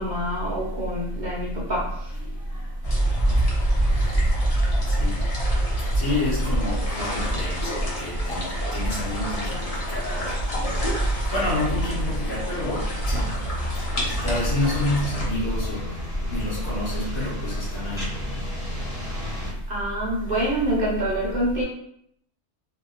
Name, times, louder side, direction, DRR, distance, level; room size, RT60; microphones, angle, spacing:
voice 1, 0.0-2.1 19.7-21.6, right 1 dB, 40° right, -6 dB, 0.9 m, -26 dB
voice 2, 2.2-19.7 20.2-20.5, left 1 dB, 80° left, -8 dB, 1.4 m, -29 dB
sound 1, 2.8-15.3, right 1 dB, 35° left, 0.6 m, -26 dB
sound 2, 8.8-19.5, left 1 dB, 5° right, 0.9 m, -34 dB
2.9 x 2.8 x 2.3 m, 0.71 s
omnidirectional pair, 1.4 m